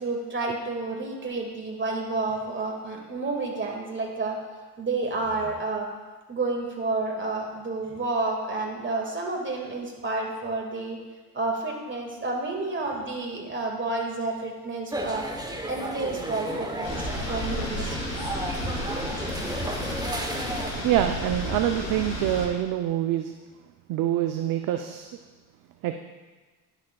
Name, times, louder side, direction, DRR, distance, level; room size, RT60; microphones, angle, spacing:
voice 1, 0.0-4.4 4.8-5.9 6.3-11.0 11.3-15.2 15.7-18.0 18.6-18.8, right 3 dB, 25° right, 0 dB, 1.9 m, -30 dB
sound 1, 14.9-20.8, right 1 dB, 10° right, 0.8 m, -33 dB
sound 2, 16.8-22.5, left 1 dB, 35° left, 2.4 m, -32 dB
voice 2, 20.8-23.3 23.9-25.1 25.8-25.9, right 12 dB, 45° right, 7 dB, 0.5 m, -25 dB
10.5 x 6.8 x 2.3 m, 1.3 s
hypercardioid pair, 70°, 46 cm